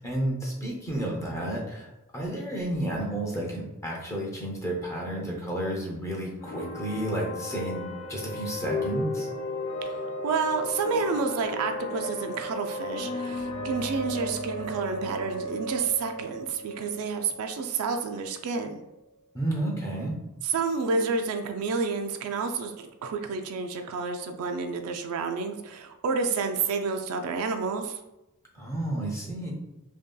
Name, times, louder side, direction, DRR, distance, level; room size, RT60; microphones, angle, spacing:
voice 1, 0.0-1.9 2.1-9.3 19.3-20.1 28.5-29.5, right 1 dB, 15° left, -3 dB, 0.6 m, -31 dB
sound 1, 6.4-18.1, left 1 dB, 80° left, 0.6 m, -34 dB
voice 2, 10.2-18.8 20.4-28.0, right 5 dB, 70° right, 6 dB, 0.3 m, -29 dB
2.8 x 2.6 x 2.2 m, 0.95 s
head